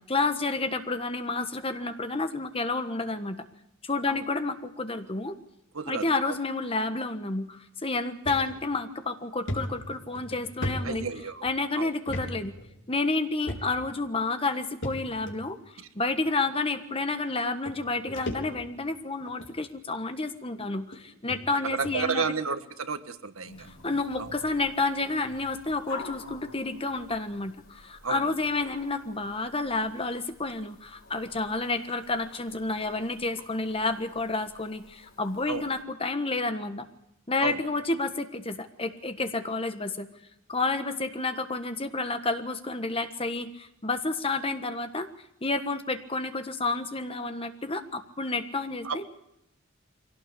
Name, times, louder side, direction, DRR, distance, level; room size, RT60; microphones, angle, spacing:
voice 1, 0.0-3.4 3.8-5.3 5.8-11.0 11.4-12.5 12.9-22.3 23.6-36.8 37.3-40.1 40.5-45.1 45.4-49.0, left 3 dB, 25° left, 9 dB, 1.5 m, -30 dB
voice 2, 5.7-6.3 10.8-11.5 11.8-11.9 15.8-15.9 21.6-23.7 24.2-24.3 28.0-28.2 35.5-35.6 37.4-37.6 48.8-49.1, right 5 dB, 75° right, 10 dB, 1.5 m, -32 dB
sound 1, 8.3-8.4 8.9-9.0 9.5-11.5 12.1-12.3 12.6-12.7 13.5-13.9 14.8-15.4 16.2-16.3 17.3-17.4 17.7-18.8 19.3-19.6 20.3-20.4 20.9-21.0 21.3-21.4 21.8-22.0, left 1 dB, 60° left, 4.1 m, -35 dB
sound 2, 23.4-35.8, left 3 dB, 85° left, 4.1 m, -50 dB
23.5 x 17.5 x 8.5 m, 0.83 s
head